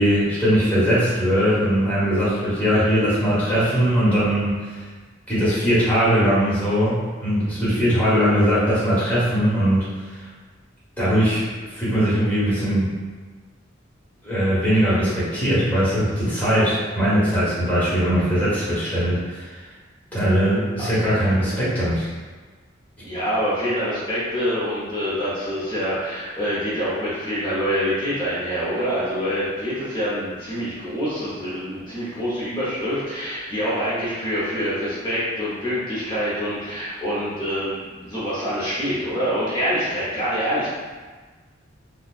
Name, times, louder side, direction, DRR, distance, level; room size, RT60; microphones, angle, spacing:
voice 1, 0.0-4.5 5.3-9.8 11.0-11.4 11.7-12.9 14.2-19.6 20.1-22.1, equal, 10° left, -11 dB, 1.3 m, -20 dB
voice 2, 23.0-40.7, equal, 25° left, -9 dB, 0.9 m, -26 dB
4.2 x 2.4 x 2.5 m, 1.4 s
head